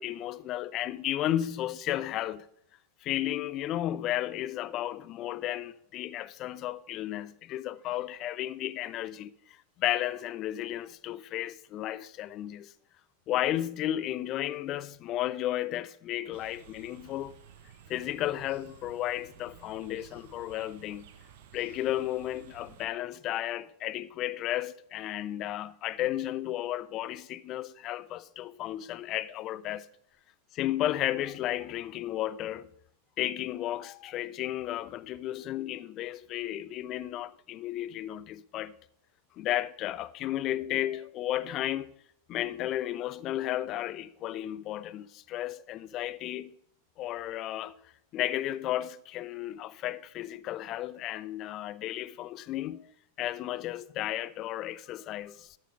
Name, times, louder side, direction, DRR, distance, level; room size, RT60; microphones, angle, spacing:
voice 1, 0.0-2.5 3.0-12.7 13.3-17.3 17.9-21.1 21.5-29.9 30.5-32.7 33.2-38.7 39.4-41.9 42.3-46.6 47.0-47.8 48.1-52.9 53.2-55.6, left 13 dB, 35° left, 0.4 m, -33 dB
sound 1, 16.3-22.9, right 9 dB, 50° right, 0.8 m, -54 dB
13.0 x 4.5 x 5.0 m
figure-of-eight pair, 90°, 0 cm